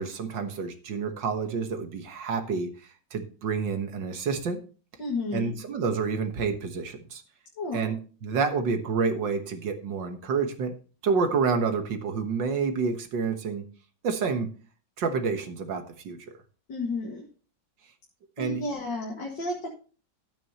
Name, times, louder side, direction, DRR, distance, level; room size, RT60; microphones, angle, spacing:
voice 1, 0.0-2.7 3.1-4.6 5.3-7.2 7.7-10.7 11.0-13.7 14.0-14.5 15.0-16.3 18.4-18.6, right 5 dB, 85° right, 6 dB, 2.0 m, -28 dB
voice 2, 5.0-5.5 7.6-7.9 16.7-17.3 18.4-19.7, left 2 dB, 85° left, -1 dB, 2.7 m, -32 dB
12.5 x 8.7 x 2.9 m, 0.37 s
omnidirectional pair, 1.9 m